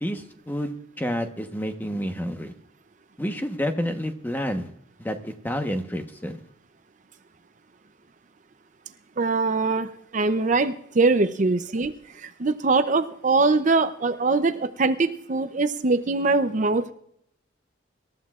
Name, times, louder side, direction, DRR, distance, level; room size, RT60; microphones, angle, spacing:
voice 1, 0.0-2.5 3.2-4.7 5.0-6.4, equal, 10° left, 5 dB, 1.0 m, -29 dB
voice 2, 9.2-11.9 12.2-16.9, right 3 dB, 40° right, 9 dB, 0.6 m, -22 dB
26.0 x 13.5 x 2.4 m, 0.71 s
head